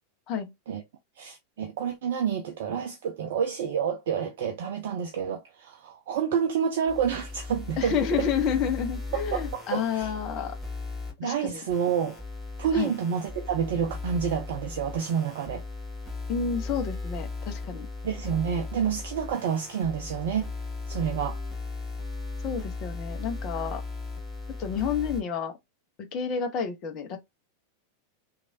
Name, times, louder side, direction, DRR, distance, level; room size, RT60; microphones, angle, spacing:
voice 1, 1.2-8.3 9.1-10.1 11.2-12.2 12.6-15.6 18.0-20.5 20.9-21.4, right 7 dB, 55° right, 0.4 m, -29 dB
sound 1, 6.9-11.1 11.7-25.2, left 3 dB, 5° left, 1.3 m, -37 dB
voice 2, 7.8-10.6 11.2-11.6 12.7-12.9 16.3-17.9 22.4-23.8 24.6-25.6 26.0-27.2, left 7 dB, 35° left, 0.8 m, -30 dB
3.1 x 2.4 x 2.6 m
figure-of-eight pair, 90°, 0 cm